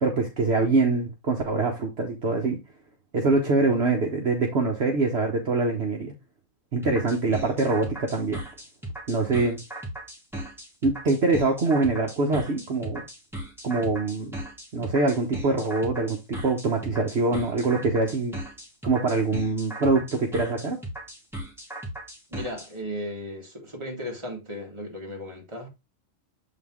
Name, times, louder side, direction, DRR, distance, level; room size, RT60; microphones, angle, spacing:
voice 1, 0.0-2.6 3.1-6.1 6.7-8.4 9.1-9.6 10.8-13.0 13.6-14.3 14.7-18.4 18.8-20.8, right 3 dB, 55° right, 1.2 m, -24 dB
sound 1, 6.8-22.7, right 1 dB, ahead, 1.7 m, -37 dB
voice 2, 22.3-25.7, equal, 20° right, 1.9 m, -36 dB
7.6 x 3.9 x 3.6 m
omnidirectional pair, 1.4 m